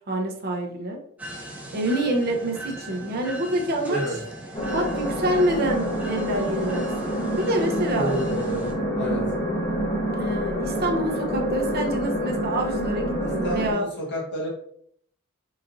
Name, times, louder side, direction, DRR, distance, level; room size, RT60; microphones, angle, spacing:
voice 1, 0.1-1.0 1.7-4.0 4.7-8.1 10.2-13.8, right 1 dB, 45° right, 2 dB, 0.7 m, -27 dB
sound 1, 1.2-8.7, right 1 dB, 5° right, 0.7 m, -39 dB
voice 2, 3.8-4.2 7.9-8.7 9.0-9.2 13.2-14.5, right 1 dB, 55° left, -3 dB, 1.4 m, -30 dB
sound 2, 4.5-13.7, equal, 20° left, 1.0 m, -27 dB
4.1 x 3.9 x 2.6 m, 0.65 s
head